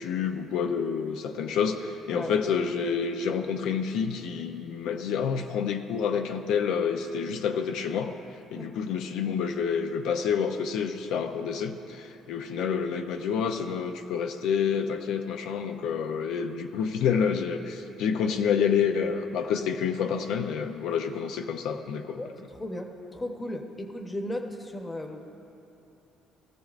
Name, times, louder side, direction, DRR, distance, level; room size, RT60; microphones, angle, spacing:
voice 1, 0.0-8.1 8.5-22.2, left 6 dB, 80° left, 6 dB, 0.6 m, -28 dB
voice 2, 22.2-25.2, left 1 dB, 15° left, 4 dB, 1.0 m, -35 dB
19.0 x 13.5 x 2.5 m, 2.9 s
cardioid pair, 120°, 0 cm